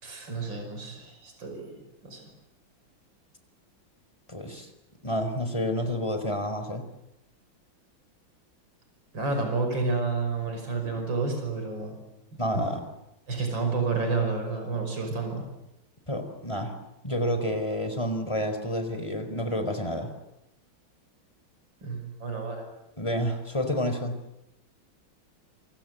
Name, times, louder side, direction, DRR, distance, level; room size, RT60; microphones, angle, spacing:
voice 1, 0.0-2.3 9.1-12.0 12.3-12.6 13.3-15.5 21.8-22.7, right 4 dB, 65° right, 4 dB, 6.3 m, -30 dB
voice 2, 4.3-4.7 5.0-6.8 12.4-12.8 16.1-16.7 17.0-20.1 23.0-24.1, equal, 15° left, 7 dB, 4.3 m, -29 dB
28.5 x 26.5 x 7.9 m, 0.87 s
omnidirectional pair, 2.2 m